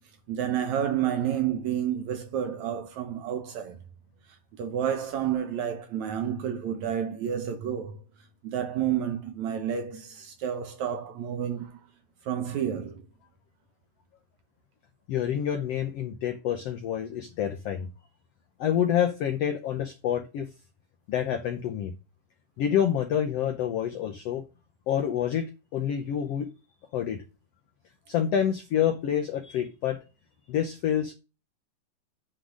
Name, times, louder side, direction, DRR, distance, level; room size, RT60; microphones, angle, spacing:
voice 1, 0.3-3.8 4.6-8.0 8.4-11.8 12.3-13.0, right 9 dB, 70° right, 1.9 m, -30 dB
voice 2, 15.1-17.9 18.6-20.5 21.1-21.9 22.6-24.4 24.9-26.5 26.9-27.2 28.1-30.0 30.5-31.1, left 9 dB, 80° left, 1.4 m, -27 dB
9.8 x 3.9 x 6.2 m
omnidirectional pair, 4.0 m